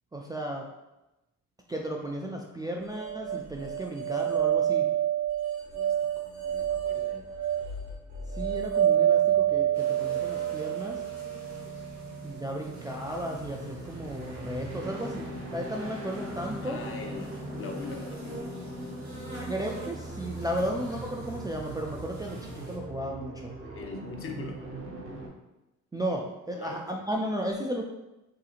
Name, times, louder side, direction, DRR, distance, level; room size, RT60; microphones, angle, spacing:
voice 1, 0.1-0.7 1.7-4.9 8.3-11.0 12.2-16.8 19.4-23.5 25.9-27.8, right 1 dB, 15° right, -1 dB, 0.3 m, -34 dB
sound 1, 2.9-12.1, right 10 dB, 85° right, 1.1 m, -28 dB
voice 2, 5.7-7.2 16.6-18.3 20.5-20.7 23.6-24.6 26.1-26.2 26.5-26.8, left 4 dB, 45° left, 2 dB, 0.6 m, -42 dB
sound 2, 6.2-25.3, right 1 dB, 45° right, 0.8 m, -41 dB
sound 3, 9.7-22.8, right 2 dB, 65° right, 1.5 m, -47 dB
3.7 x 2.8 x 2.4 m, 0.97 s
cardioid pair, 90°, 30 cm